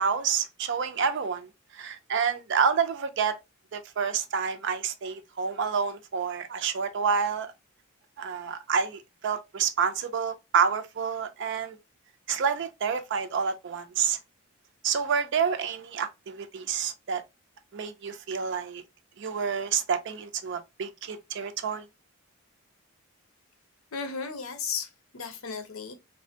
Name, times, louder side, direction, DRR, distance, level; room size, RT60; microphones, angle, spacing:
voice 1, 0.0-3.4 3.7-7.5 8.2-11.8 12.3-14.2 14.8-17.2 17.7-18.8 19.2-21.9, right 6 dB, 55° right, 0.4 m, -28 dB
voice 2, 23.9-25.9, left 5 dB, 75° left, 0.6 m, -35 dB
3.3 x 2.1 x 2.7 m
head